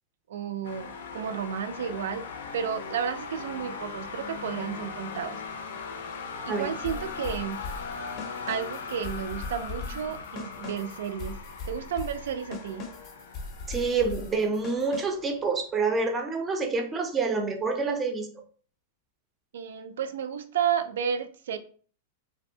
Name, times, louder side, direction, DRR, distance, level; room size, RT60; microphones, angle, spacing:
voice 1, 0.3-2.2 2.5-5.4 6.4-7.6 8.5-11.4 11.7-12.9 19.5-21.6, right 8 dB, 80° right, 9 dB, 0.3 m, -32 dB
sound 1, 0.6-15.5, left 5 dB, 85° left, 0.4 m, -40 dB
sound 2, 6.8-15.3, left 3 dB, 35° left, 0.5 m, -40 dB
voice 2, 13.7-18.3, right 4 dB, 15° right, 4 dB, 0.4 m, -27 dB
2.5 x 2.1 x 2.7 m, 0.43 s
supercardioid pair, 150°, 0 cm